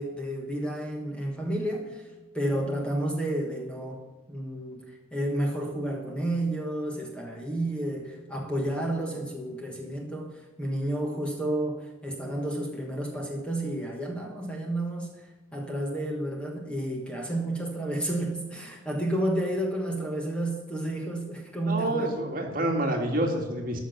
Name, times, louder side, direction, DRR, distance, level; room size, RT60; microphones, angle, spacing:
voice 1, 0.0-2.0 2.3-15.3 15.5-22.1, right 1 dB, 5° left, 0 dB, 1.2 m, -31 dB
voice 2, 21.7-23.8, right 1 dB, 45° right, 2 dB, 1.8 m, -28 dB
13.0 x 6.1 x 7.0 m, 1.2 s
head